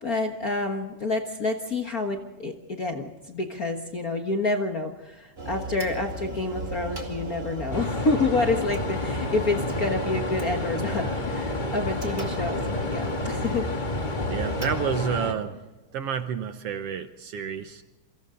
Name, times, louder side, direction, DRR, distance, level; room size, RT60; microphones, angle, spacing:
voice 1, 0.0-13.7, left 3 dB, 40° left, 3 dB, 1.4 m, -28 dB
sound 1, 5.4-14.7, right 2 dB, 20° right, 2.2 m, -36 dB
sound 2, 7.7-15.3, left 2 dB, 25° left, 1.1 m, -30 dB
voice 2, 14.3-15.6 15.9-17.9, right 8 dB, 65° right, 9 dB, 1.7 m, -30 dB
28.0 x 25.0 x 3.9 m, 1.1 s
omnidirectional pair, 3.3 m